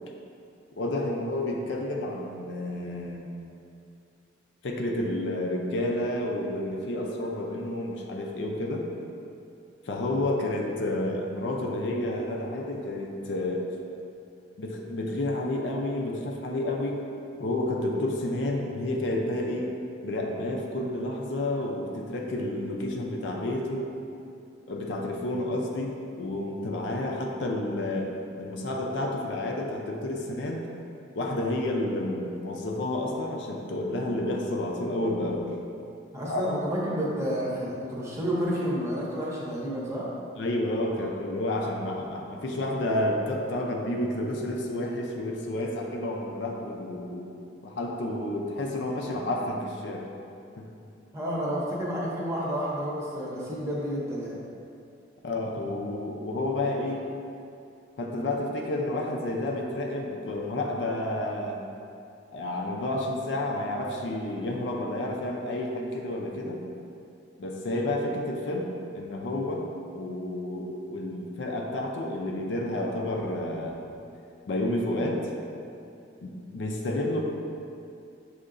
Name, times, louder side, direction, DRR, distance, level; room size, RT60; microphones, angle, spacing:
voice 1, 0.8-3.2 4.6-8.9 9.9-13.7 14.6-17.0 17.4-19.7 20.0-23.9 24.7-28.1 28.4-30.6 31.2-35.5 36.3-36.4 40.4-47.3 47.6-50.1 50.6-50.7 55.2-57.0 58.0-61.6 62.3-66.6 67.4-69.7 69.9-73.8 74.5-75.3 76.2-77.2, left 1 dB, 75° left, 0 dB, 0.5 m, -30 dB
voice 2, 36.1-40.1 51.1-54.4, equal, 15° right, -6 dB, 0.7 m, -30 dB
6.5 x 2.8 x 2.5 m, 2.6 s
head